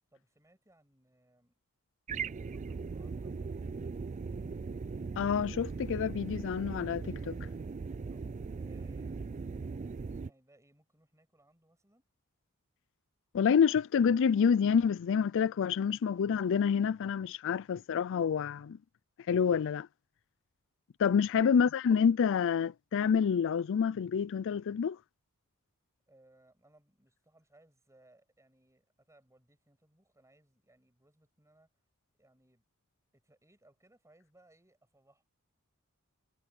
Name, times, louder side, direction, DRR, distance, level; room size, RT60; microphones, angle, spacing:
voice 1, 0.1-1.5 2.1-3.5 8.1-8.2 8.5-9.8 10.2-12.0 21.2-21.4 26.1-31.7 32.2-32.6 33.1-35.2, right 1 dB, 15° right, 7.7 m, -65 dB
sound 1, 2.1-10.3, right 4 dB, 35° right, 0.4 m, -39 dB
voice 2, 5.2-7.4 13.3-18.8 19.3-19.9 21.0-25.0, left 7 dB, 60° left, 0.4 m, -28 dB
head